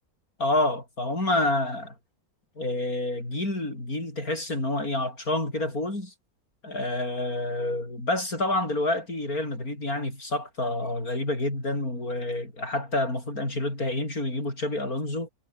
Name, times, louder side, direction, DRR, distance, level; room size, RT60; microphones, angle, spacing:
voice 1, 0.4-1.9 2.6-6.1 6.6-15.3, left 2 dB, 70° left, 8.6 m, -28 dB
omnidirectional pair, 1.6 m